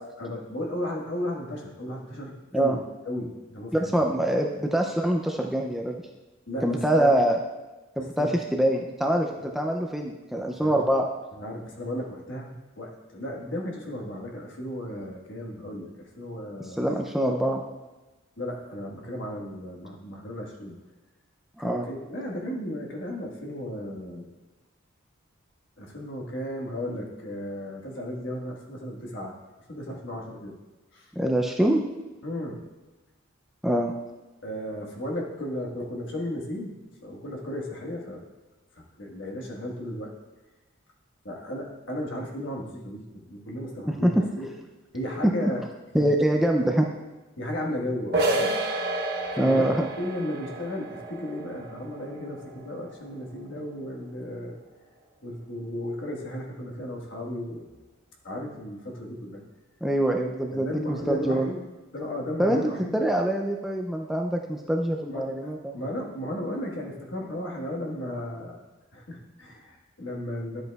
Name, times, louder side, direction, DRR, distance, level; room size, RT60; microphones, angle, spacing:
voice 1, 0.0-4.0 6.5-7.1 8.0-8.4 9.4-9.5 10.6-10.9 11.3-17.0 18.4-20.8 21.6-24.3 25.8-29.3 29.7-30.6 30.9-31.1 32.2-32.6 34.4-36.7 37.0-38.2 38.7-40.1 41.2-44.5 44.9-45.7 46.0-46.1 47.4-48.6 49.3-54.6 55.2-57.6 58.2-59.4 60.5-61.6 61.9-63.0 65.1-68.6 68.9-70.6, left 1 dB, 60° left, -1 dB, 1.4 m, -35 dB
voice 2, 3.7-5.9 6.6-7.4 8.0-11.1 16.8-17.6 21.6-21.9 31.2-31.8 33.6-33.9 43.9-44.2 45.2-45.3 45.9-46.9 49.4-49.9 59.8-61.5 62.4-62.6 62.9-65.8, right 1 dB, ahead, 2 dB, 0.3 m, -24 dB
sound 1, 48.1-53.6, right 2 dB, 50° right, 1.1 m, -31 dB
11.0 x 7.9 x 2.3 m, 1.1 s
head